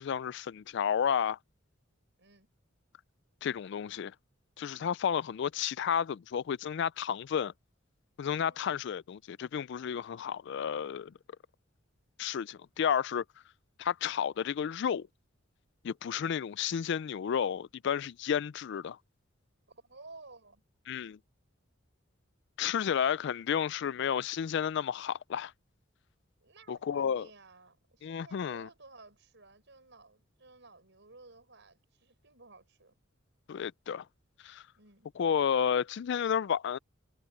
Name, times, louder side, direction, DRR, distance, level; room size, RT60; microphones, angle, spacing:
voice 1, 0.0-1.4 3.4-4.1 4.6-7.5 8.2-11.1 12.2-13.2 13.8-15.1 15.8-19.0 20.9-21.2 22.6-25.5 26.7-27.3 28.0-28.7 33.5-34.0 34.4-34.6 35.2-36.8, left 8 dB, 60° left, 0.4 m, -31 dB
voice 2, 2.2-2.5 8.3-8.6 19.7-20.6 26.4-33.0 34.8-35.1, right 3 dB, 65° right, 7.1 m, -55 dB
head